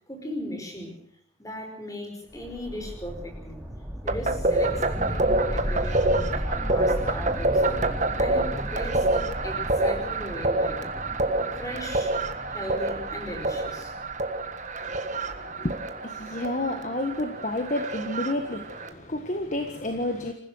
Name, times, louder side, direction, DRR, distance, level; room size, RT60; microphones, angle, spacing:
voice 1, 0.1-1.0 1.4-3.6 4.0-7.8 8.1-10.9 11.6-12.2 12.5-14.0, equal, 15° left, 4 dB, 5.2 m, -37 dB
sound 1, 2.3-15.4, equal, 5° right, 3.0 m, -35 dB
sound 2, 4.1-18.9, right 2 dB, 40° right, 1.6 m, -27 dB
voice 2, 14.8-20.3, left 1 dB, 40° left, 5 dB, 1.6 m, -31 dB
27.0 x 15.5 x 6.4 m, 0.63 s
head